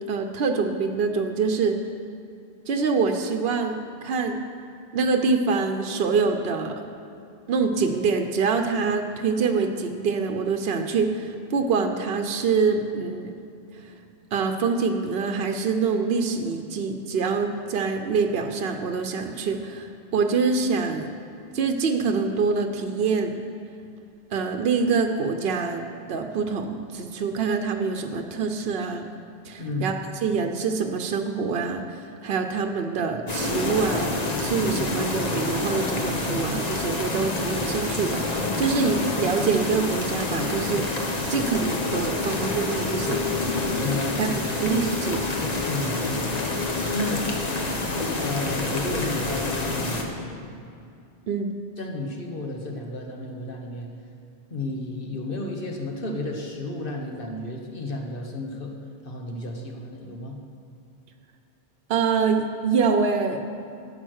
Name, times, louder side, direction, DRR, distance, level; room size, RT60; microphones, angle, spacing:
voice 1, 0.1-1.8 2.7-4.4 4.9-6.8 7.5-13.3 14.3-21.1 21.5-23.4 24.3-29.0 29.4-29.9 30.2-40.8 41.3-43.2 44.2-44.3 44.6-45.2 51.3-51.5 61.9-63.4, right 5 dB, 70° right, 5 dB, 0.9 m, -25 dB
voice 2, 29.6-29.9 43.8-44.4 45.7-46.3 46.9-47.3 48.1-50.5 51.8-53.9 54.5-58.7 59.0-60.4, left 2 dB, 60° left, 1 dB, 1.4 m, -32 dB
sound 1, 33.3-50.0, left 2 dB, 40° left, 1.2 m, -27 dB
12.0 x 8.4 x 6.4 m, 2.5 s
omnidirectional pair, 1.0 m